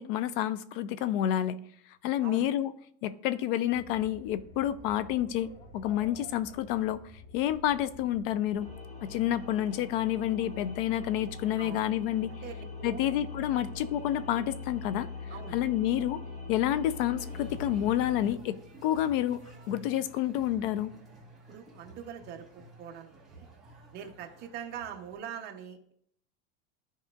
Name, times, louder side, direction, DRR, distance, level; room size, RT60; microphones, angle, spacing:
voice 1, 0.0-1.6 2.0-2.7 3.0-7.0 7.3-8.7 9.0-12.3 12.8-15.1 15.5-16.2 16.5-19.4 19.7-20.9, left 12 dB, 60° left, 0.4 m, -29 dB
sound 1, 3.7-8.7, left 2 dB, 85° left, 1.9 m, -50 dB
sound 2, 8.6-18.3, left 4 dB, 20° left, 1.1 m, -42 dB
voice 2, 12.4-13.1 13.5-13.6 15.3-15.6 21.5-23.5 23.9-25.9, right 8 dB, 30° right, 0.8 m, -43 dB
sound 3, 17.2-25.1, right 2 dB, ahead, 1.5 m, -51 dB
13.5 x 4.8 x 2.4 m
supercardioid pair, 170°, 32 cm